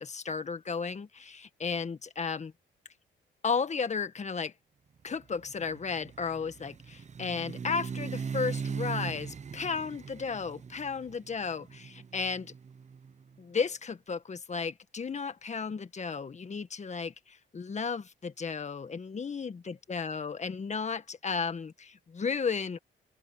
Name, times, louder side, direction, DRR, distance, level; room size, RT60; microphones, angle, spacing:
voice 1, 0.0-2.5 3.4-4.5 5.0-12.5 13.4-22.8, left 5 dB, 35° left, 1.7 m, -34 dB
sound 1, 5.2-13.2, right 6 dB, 35° right, 0.9 m, -40 dB
open air
cardioid pair, 90°, 20 cm